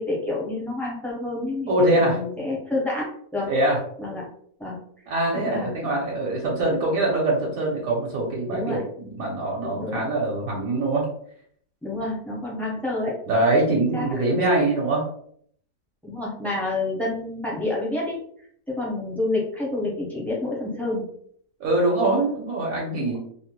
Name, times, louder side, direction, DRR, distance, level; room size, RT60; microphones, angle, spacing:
voice 1, 0.0-3.5 4.0-4.3 4.6-4.8 5.4-5.7 8.5-8.8 9.6-10.0 11.8-13.2 13.7-14.2 16.0-18.2 18.7-21.1 23.1-23.2, left 2 dB, ahead, -6 dB, 0.4 m, -28 dB
voice 2, 1.7-2.2 3.5-3.8 5.1-11.1 13.3-15.0 21.6-23.2, right 2 dB, 70° right, -2 dB, 1.1 m, -23 dB
2.7 x 2.1 x 2.9 m, 0.62 s
omnidirectional pair, 1.6 m